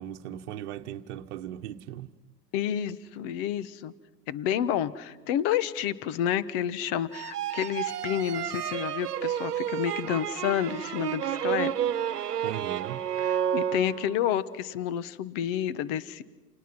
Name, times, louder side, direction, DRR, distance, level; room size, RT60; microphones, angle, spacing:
voice 1, 0.0-2.1 12.4-13.0, right 11 dB, 45° right, 1.3 m, -38 dB
voice 2, 2.5-3.9 4.3-11.7 13.5-16.2, left 10 dB, 35° left, 1.2 m, -29 dB
sound 1, 7.1-14.3, right 10 dB, 70° right, 1.2 m, -31 dB
29.0 x 28.5 x 6.1 m
hypercardioid pair, 115°, 49 cm